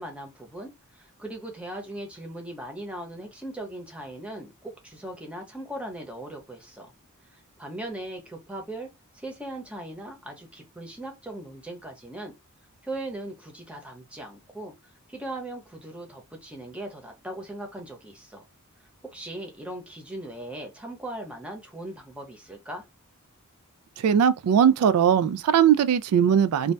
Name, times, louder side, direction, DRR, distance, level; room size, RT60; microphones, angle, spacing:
voice 1, 0.0-6.9 7.6-8.9 9.1-12.3 12.8-14.7 15.1-18.4 19.1-22.8, right 1 dB, 5° right, 0.8 m, -39 dB
voice 2, 24.0-26.7, right 8 dB, 85° right, 0.3 m, -20 dB
2.7 x 2.1 x 3.2 m
head